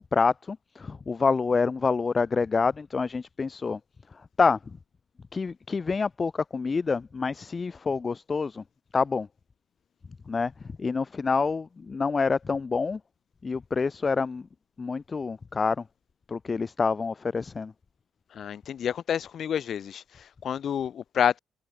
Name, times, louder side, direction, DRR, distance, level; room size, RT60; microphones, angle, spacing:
voice 1, 0.0-3.8 4.1-4.6 5.3-8.6 8.9-9.3 10.3-10.5 10.8-13.0 13.4-14.5 14.8-15.8 16.3-17.7, left 4 dB, 35° left, 0.3 m, -27 dB
voice 2, 18.3-21.4, left 8 dB, 60° left, 1.9 m, -29 dB
cardioid pair, 90°, 0 cm